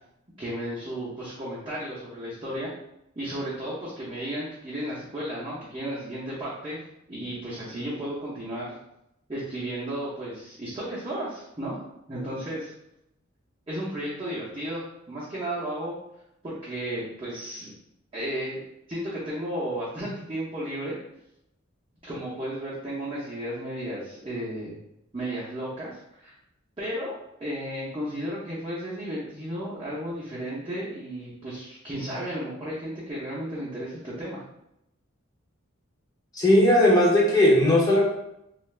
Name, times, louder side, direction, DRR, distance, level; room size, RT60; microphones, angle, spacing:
voice 1, 0.4-2.7 3.2-6.8 7.1-8.8 9.3-12.7 13.7-15.9 16.4-17.7 18.1-18.6 18.9-21.0 22.0-24.8 25.1-26.4 26.8-34.4, right 1 dB, 25° right, -9 dB, 0.6 m, -34 dB
voice 2, 36.3-38.0, left 1 dB, 20° left, -4 dB, 0.6 m, -18 dB
2.5 x 2.3 x 3.1 m, 0.81 s
head